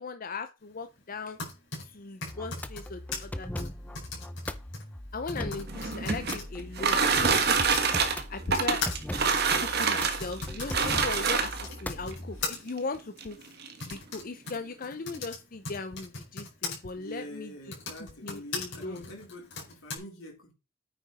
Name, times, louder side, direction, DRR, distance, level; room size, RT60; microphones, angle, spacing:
voice 1, 0.0-1.4 1.8-3.7 5.1-7.2 7.4-7.6 8.3-8.8 9.6-13.4 13.9-17.5 18.0-19.1, left 3 dB, 45° left, 0.7 m, -38 dB
Typing, 1.1-7.9 8.5-16.8 17.6-20.0, left 4 dB, 60° left, 4.8 m, -40 dB
sound 1, 2.3-12.5, left 1 dB, 10° left, 0.6 m, -39 dB
sound 2, 5.6-11.8 12.7-12.8 13.2-13.3 13.6-14.0, right 5 dB, 55° right, 1.5 m, -26 dB
voice 2, 12.4-12.7 17.0-20.5, equal, 85° left, 4.1 m, -46 dB
9.3 x 6.1 x 4.2 m
head